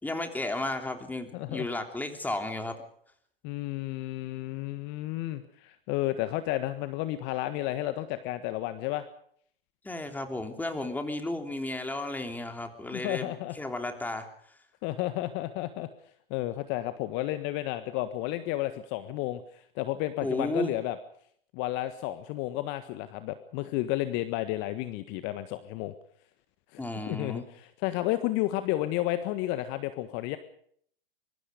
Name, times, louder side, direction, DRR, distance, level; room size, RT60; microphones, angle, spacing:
voice 1, 0.0-2.8 9.8-14.3 20.2-20.7 26.8-27.5, left 2 dB, 5° left, 5 dB, 3.3 m, -33 dB
voice 2, 1.3-1.7 3.4-9.0 12.9-13.6 14.8-15.9 16.3-21.0 21.5-25.9 26.7-30.4, left 15 dB, 40° left, 11 dB, 1.5 m, -32 dB
24.5 x 23.5 x 5.2 m, 0.64 s
figure-of-eight pair, 105°, 29 cm